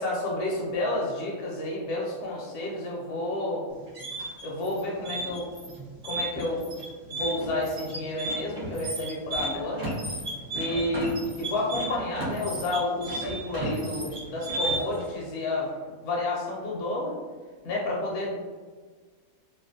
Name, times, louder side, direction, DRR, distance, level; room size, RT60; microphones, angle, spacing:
voice 1, 0.0-3.6 4.4-5.5 6.0-6.7 7.1-9.8 10.5-11.1 11.4-15.7 16.0-17.1 17.6-18.3, left 2 dB, 65° left, -3 dB, 0.7 m, -30 dB
sound 1, 3.7-15.0, right 2 dB, 45° right, 0.9 m, -33 dB
2.5 x 2.1 x 2.6 m, 1.5 s
omnidirectional pair, 1.5 m